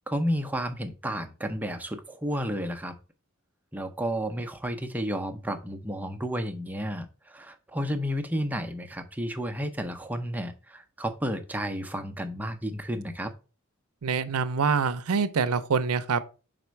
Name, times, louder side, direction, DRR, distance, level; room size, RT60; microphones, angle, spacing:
voice 1, 0.1-3.0 3.7-13.3, equal, 5° right, 0.5 m, -32 dB
voice 2, 14.0-16.2, right 5 dB, 85° right, 0.5 m, -25 dB
5.1 x 4.2 x 4.5 m
head